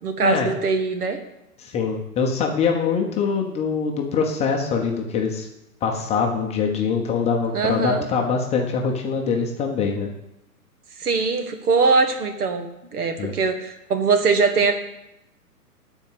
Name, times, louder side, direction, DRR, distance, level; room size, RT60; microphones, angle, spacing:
voice 1, 0.0-1.2 7.5-8.1 11.0-12.7 12.9-14.7, right 4 dB, 65° right, 7 dB, 1.8 m, -21 dB
voice 2, 1.6-5.5 5.8-10.1 13.2-13.3, left 5 dB, 15° left, 1 dB, 0.8 m, -23 dB
12.0 x 4.5 x 7.9 m, 0.86 s
hypercardioid pair, 130°, 48 cm